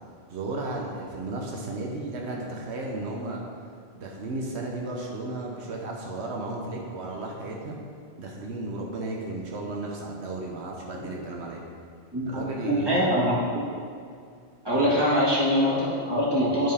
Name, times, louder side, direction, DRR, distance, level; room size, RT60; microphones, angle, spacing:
voice 1, 0.3-3.4 3.9-7.8 8.2-11.6 12.2-13.2 14.8-14.9 16.5-16.7, right 2 dB, 85° right, -1 dB, 1.1 m, -34 dB
voice 2, 12.1-13.3 14.6-16.7, equal, 20° right, -8 dB, 1.9 m, -23 dB
11.0 x 4.6 x 3.4 m, 2.3 s
omnidirectional pair, 1.1 m